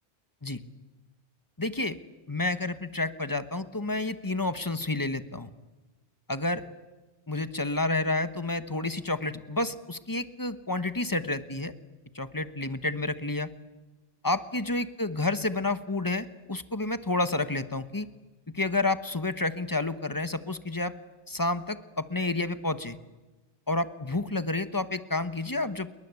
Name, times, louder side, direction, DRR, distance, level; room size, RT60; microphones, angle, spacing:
voice 1, 1.6-2.0 2.3-5.5 6.3-6.6 7.3-11.7 12.1-13.5 14.2-18.1 18.5-20.9 21.3-23.0 23.7-25.9, left 2 dB, 20° left, 12 dB, 1.2 m, -30 dB
28.5 x 22.5 x 8.3 m, 1.1 s
omnidirectional pair, 1.2 m